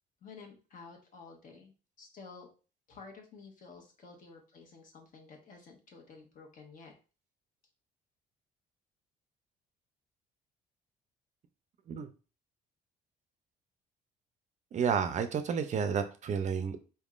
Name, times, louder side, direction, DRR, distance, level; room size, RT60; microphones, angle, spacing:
voice 1, 0.2-2.5 2.9-6.9, left 4 dB, 55° left, 2 dB, 1.3 m, -52 dB
voice 2, 14.7-16.8, right 7 dB, 45° right, 8 dB, 0.5 m, -31 dB
4.3 x 3.6 x 2.4 m, 0.35 s
cardioid pair, 110°, 17 cm